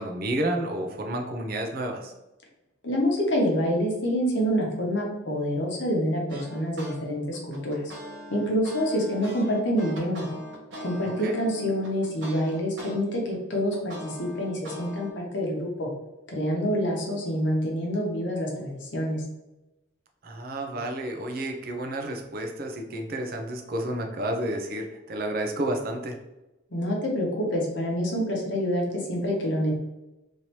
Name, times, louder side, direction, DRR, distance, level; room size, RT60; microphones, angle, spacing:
voice 1, 0.0-2.1 11.0-11.4 20.2-26.2, right 1 dB, 50° right, 3 dB, 0.5 m, -31 dB
voice 2, 2.8-7.8 8.3-10.3 10.8-15.9 16.3-19.2 26.7-29.7, equal, 65° left, -1 dB, 0.9 m, -27 dB
sound 1, 6.3-7.0 7.3-12.9 13.3-15.1, equal, 65° right, 1.0 m, -41 dB
3.1 x 2.7 x 2.9 m, 0.99 s
head